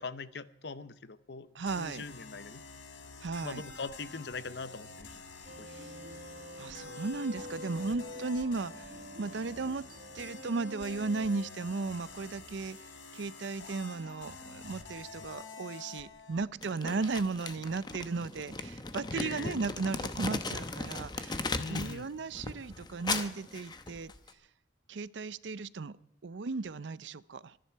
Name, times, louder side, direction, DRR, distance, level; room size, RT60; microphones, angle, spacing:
voice 1, 0.0-2.6 3.4-5.1 5.6-5.7 19.1-19.5 21.5-22.1, left 4 dB, 60° left, 15 dB, 0.7 m, -41 dB
voice 2, 1.5-2.0 3.2-3.6 5.7-5.9 6.6-9.8 10.1-12.8 13.1-24.1 24.9-26.0 26.2-27.6, right 4 dB, 70° right, 18 dB, 0.5 m, -36 dB
sound 1, 1.6-16.5, left 4 dB, 85° left, 1.9 m, -48 dB
sound 2, 5.5-14.3, equal, 50° right, 0.9 m, -48 dB
Crumpling crinkling, 16.6-22.0 22.3-24.3, left 3 dB, 20° left, 0.8 m, -37 dB
25.5 x 10.5 x 4.6 m, 0.78 s
head